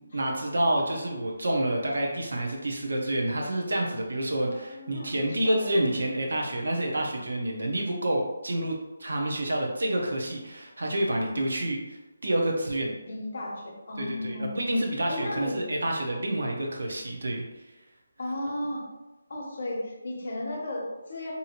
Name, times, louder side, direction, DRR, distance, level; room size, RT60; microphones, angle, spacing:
voice 1, 0.0-12.9 14.0-17.4, right 1 dB, 70° right, 0 dB, 0.6 m, -28 dB
voice 2, 4.5-5.7 13.0-14.5 15.1-15.6 18.2-18.8 19.3-21.3, left 1 dB, 40° left, -2 dB, 0.7 m, -35 dB
2.7 x 2.5 x 2.8 m, 1.1 s
hypercardioid pair, 175°, 0 cm